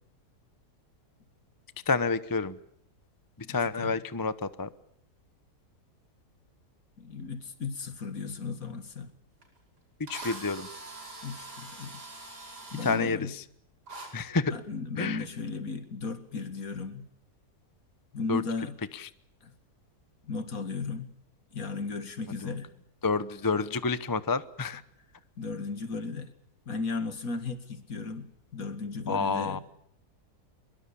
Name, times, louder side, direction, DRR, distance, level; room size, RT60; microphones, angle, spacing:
voice 1, 1.9-2.6 3.5-4.7 10.0-10.7 12.8-13.4 14.1-14.5 15.0-15.2 18.3-18.4 18.9-19.1 22.4-22.6 23.0-24.8 29.1-29.6, left 4 dB, 20° left, 14 dB, 0.6 m, -29 dB
voice 2, 7.0-9.1 11.2-11.9 12.7-13.3 14.5-17.1 18.1-18.7 19.4-19.5 20.2-21.1 21.5-22.7 25.4-26.3 26.7-28.3 28.5-29.6, left 4 dB, 60° left, 10 dB, 2.4 m, -35 dB
Drill, 9.4-9.5 10.1-13.0 13.9-14.1, right 2 dB, 90° right, 5.9 m, -43 dB
23.5 x 22.5 x 7.0 m, 0.72 s
omnidirectional pair, 1.7 m